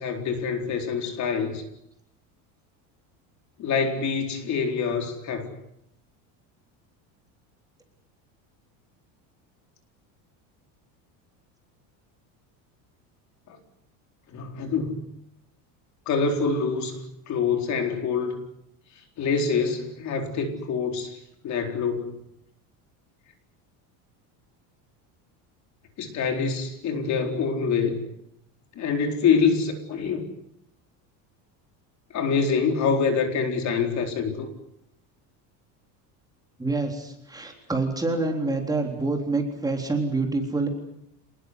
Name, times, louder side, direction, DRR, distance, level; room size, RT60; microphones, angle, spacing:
voice 1, 0.0-1.6 3.6-5.5 13.5-13.6 14.3-15.1 16.1-17.0 17.3-18.4 19.2-21.2 21.4-22.1 26.0-28.0 28.8-30.2 32.1-34.5, left 5 dB, 40° left, 4 dB, 4.3 m, -25 dB
voice 2, 36.6-40.7, right 3 dB, 10° right, 2 dB, 3.8 m, -27 dB
28.0 x 20.0 x 8.2 m, 0.78 s
cardioid pair, 150°, 41 cm